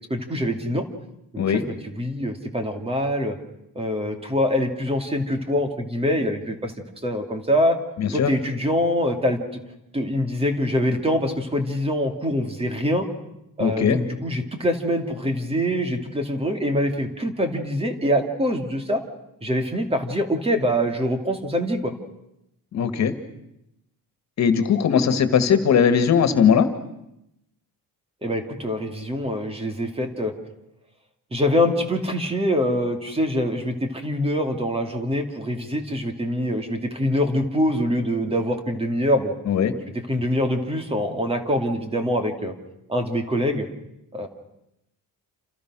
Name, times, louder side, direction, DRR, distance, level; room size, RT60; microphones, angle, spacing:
voice 1, 0.1-0.9 1.3-1.6 1.9-3.4 3.7-6.7 7.0-7.8 8.1-9.4 9.9-13.1 13.6-19.0 19.4-21.9 28.2-30.3 31.3-39.3 40.1-42.5 42.9-43.7 44.1-44.3, equal, 15° right, 6 dB, 2.6 m, -24 dB
voice 2, 8.0-8.3 13.6-14.0 22.7-23.1 24.4-26.7 39.5-39.7, left 7 dB, 50° left, 9 dB, 2.2 m, -19 dB
28.5 x 28.5 x 6.3 m, 0.84 s
cardioid pair, 180°, 35 cm